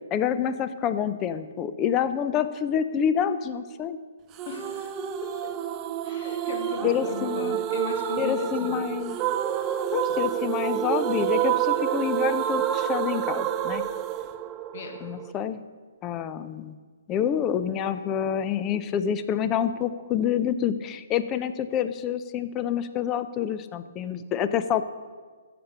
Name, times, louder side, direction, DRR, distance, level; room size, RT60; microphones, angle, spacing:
voice 1, 0.1-4.0 6.8-7.6 8.2-9.2 9.9-13.8 15.0-15.6 16.0-16.7 17.1-24.8, left 9 dB, 25° left, 12 dB, 0.6 m, -27 dB
sound 1, 4.4-15.3, right 11 dB, 25° right, 0.5 m, -28 dB
voice 2, 4.5-5.5 6.0-8.8 14.7-15.1, left 5 dB, 45° left, 5 dB, 1.5 m, -37 dB
14.5 x 6.9 x 6.7 m, 1.5 s
figure-of-eight pair, 130°, 0 cm